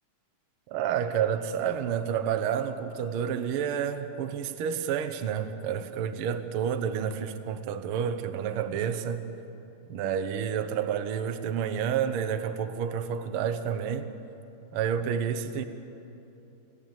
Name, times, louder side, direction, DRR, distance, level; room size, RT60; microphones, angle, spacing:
voice 1, 0.7-9.2 9.9-14.1 14.7-15.6, right 8 dB, 90° right, 9 dB, 1.2 m, -29 dB
29.5 x 11.0 x 9.0 m, 2.9 s
omnidirectional pair, 3.7 m